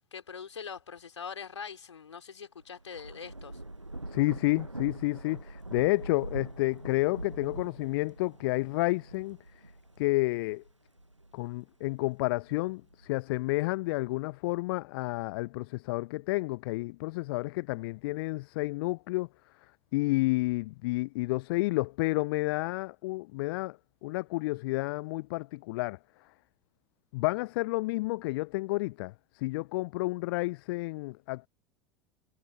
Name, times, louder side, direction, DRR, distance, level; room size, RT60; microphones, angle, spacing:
voice 1, 0.1-3.6, left 6 dB, 75° left, 5.1 m, -43 dB
Thunder / Rain, 2.6-11.5 12.1-13.4, right 2 dB, 90° right, 1.5 m, -43 dB
voice 2, 4.1-9.6 10.0-10.6 11.3-26.3 27.1-31.5, left 22 dB, 55° left, 0.8 m, -30 dB
figure-of-eight pair, 80°, 15 cm